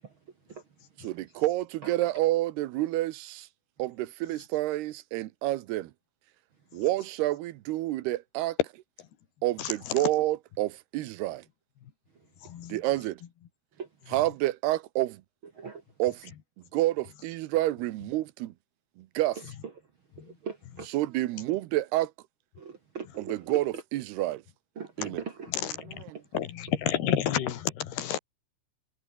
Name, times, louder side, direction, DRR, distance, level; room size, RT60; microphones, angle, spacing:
voice 1, 1.0-3.5 3.8-5.9 6.7-8.6 9.4-11.4 12.7-13.2 14.1-15.2 16.0-16.3 16.7-18.5 19.0-19.4 20.9-22.1 23.2-24.4 25.0-25.2 25.9-26.2, right 16 dB, 90° right, 3.0 m, -29 dB
voice 2, 12.4-12.8 20.2-20.3 25.0-25.1 25.5-26.0 26.3-28.2, left 10 dB, 80° left, 4.1 m, -30 dB
voice 3, 20.2-20.9 22.6-23.4 24.8-24.9 25.2-25.5, right 6 dB, 50° right, 1.6 m, -40 dB
omnidirectional pair, 4.6 m